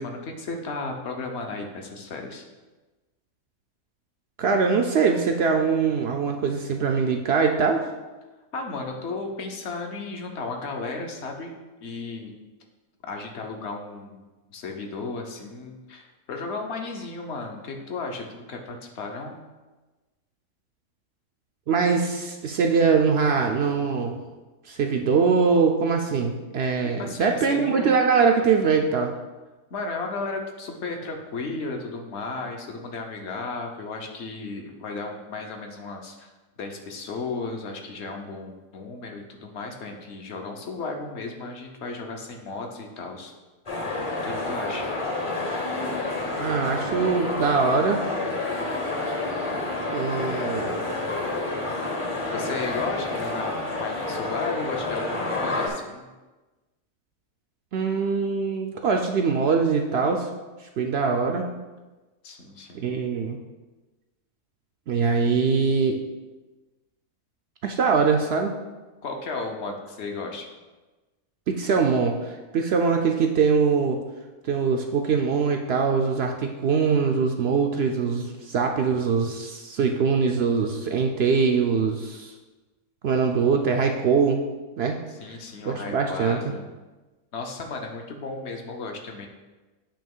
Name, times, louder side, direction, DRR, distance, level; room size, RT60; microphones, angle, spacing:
voice 1, 0.0-2.4 8.5-11.5 11.8-12.3 13.1-14.2 14.5-19.4 27.0-28.0 29.7-36.3 36.6-43.3 44.2-44.9 52.3-56.1 62.2-62.9 69.0-70.5 85.1-86.6 87.3-89.3, left 3 dB, 55° left, 3 dB, 1.1 m, -34 dB
voice 2, 4.4-7.9 21.7-24.2 24.7-29.1 46.4-48.0 49.9-50.8 57.7-60.3 60.8-61.5 62.7-63.4 64.9-66.0 67.6-68.5 71.5-74.0 74.4-82.3 83.0-84.4 84.8-85.0 85.6-86.4, right 5 dB, 65° right, 3 dB, 0.6 m, -22 dB
sound 1, 43.7-55.7, left 2 dB, 25° left, 0.8 m, -29 dB
8.6 x 3.0 x 5.4 m, 1.2 s
omnidirectional pair, 1.5 m